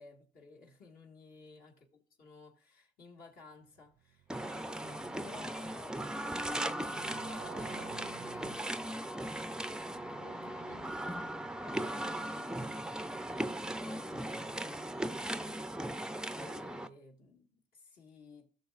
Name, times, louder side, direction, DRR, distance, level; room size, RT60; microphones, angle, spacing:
voice 1, 0.0-1.9 2.2-9.7 10.1-12.8 13.5-18.5, left 4 dB, 65° left, 1.8 m, -55 dB
Motorcycle, 3.7-11.8, right 13 dB, 75° right, 0.5 m, -55 dB
sound 1, 4.3-16.9, right 1 dB, 5° right, 0.4 m, -38 dB
16.0 x 6.6 x 2.4 m
cardioid pair, 110°, 17 cm